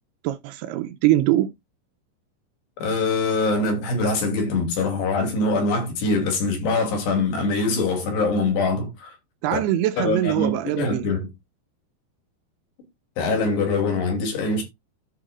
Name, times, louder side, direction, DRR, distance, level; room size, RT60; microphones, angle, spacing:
voice 1, 0.2-1.6 9.4-11.1, right 14 dB, 80° right, 2.4 m, -23 dB
voice 2, 2.8-9.2 9.5-9.6 10.0-11.3 13.2-14.6, left 3 dB, 75° left, 4.6 m, -23 dB
14.0 x 5.5 x 2.4 m
omnidirectional pair, 4.9 m